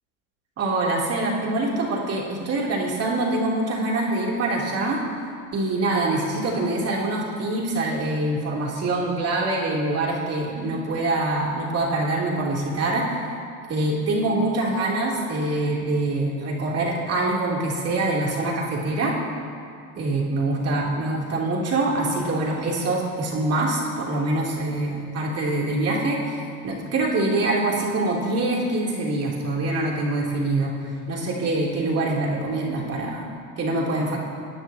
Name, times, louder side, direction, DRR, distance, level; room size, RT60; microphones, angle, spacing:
voice 1, 0.6-5.0 5.5-13.2 13.7-19.2 19.9-30.7 31.1-33.3 33.6-34.2, right 2 dB, 35° right, -3 dB, 2.8 m, -24 dB
19.5 x 9.6 x 2.7 m, 2.3 s
hypercardioid pair, 95°, 43 cm